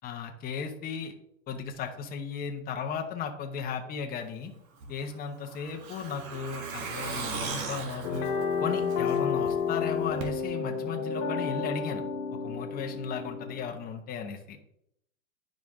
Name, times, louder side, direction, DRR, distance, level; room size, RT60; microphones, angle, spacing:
voice 1, 0.0-1.1 1.5-4.5 4.9-8.3 8.6-12.0 12.4-14.6, left 6 dB, 20° left, 3 dB, 0.9 m, -35 dB
Truck, 4.8-9.5 9.8-9.9 10.2-10.3, right 4 dB, 70° right, 1.8 m, -38 dB
sound 1, 8.0-13.7, left 6 dB, 60° left, 1.4 m, -31 dB
10.5 x 5.1 x 3.6 m, 0.76 s
supercardioid pair, 140°, 43 cm